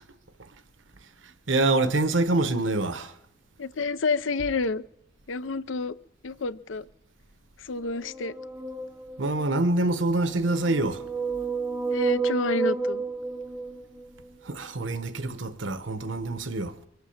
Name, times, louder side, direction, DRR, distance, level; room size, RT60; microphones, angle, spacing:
voice 1, 1.2-3.1 9.2-11.0 14.4-16.8, right 2 dB, 75° right, 1.0 m, -26 dB
voice 2, 3.6-4.8 5.3-5.9 6.2-6.9 7.6-8.3 11.9-13.0, left 3 dB, 80° left, 0.6 m, -29 dB
sound 1, 7.9-9.6 10.4-14.3, right 4 dB, 10° right, 0.6 m, -31 dB
24.0 x 8.1 x 7.1 m
head